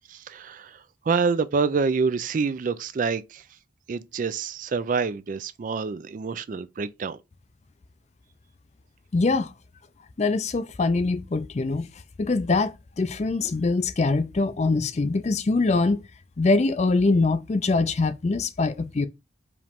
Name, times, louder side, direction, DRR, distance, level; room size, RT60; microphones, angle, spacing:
voice 1, 0.1-3.5 3.9-7.2, right 5 dB, 40° right, 0.3 m, -27 dB
voice 2, 9.1-9.5 10.2-11.9 12.2-16.0 16.4-19.1, left 3 dB, 35° left, 0.4 m, -23 dB
4.8 x 3.1 x 3.5 m
head